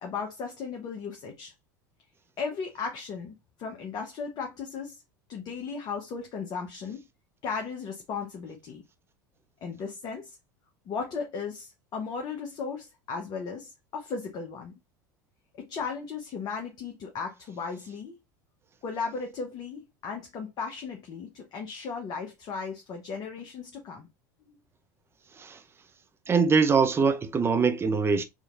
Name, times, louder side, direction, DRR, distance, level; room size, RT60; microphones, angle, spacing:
voice 1, 0.0-1.5 2.4-5.0 5.3-7.1 7.4-8.8 9.6-10.4 10.9-14.7 15.5-18.2 18.8-24.1 24.5-24.6, left 5 dB, 40° left, 1.0 m, -36 dB
voice 2, 26.3-28.2, right 5 dB, 25° right, 0.7 m, -23 dB
4.9 x 2.9 x 2.5 m
hypercardioid pair, 75°, 10 cm